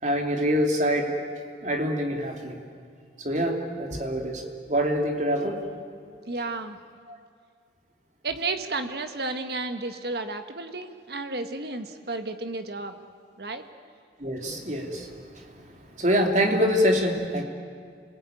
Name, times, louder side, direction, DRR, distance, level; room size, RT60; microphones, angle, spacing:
voice 1, 0.0-1.1 1.6-2.6 3.2-4.4 4.7-5.6 7.1-7.2 14.2-15.4 16.0-17.4, equal, 40° right, 2 dB, 2.9 m, -25 dB
voice 2, 6.3-6.8 8.2-13.0 13.4-13.6, right 3 dB, 60° right, 7 dB, 1.6 m, -32 dB
29.0 x 20.0 x 9.2 m, 2.2 s
head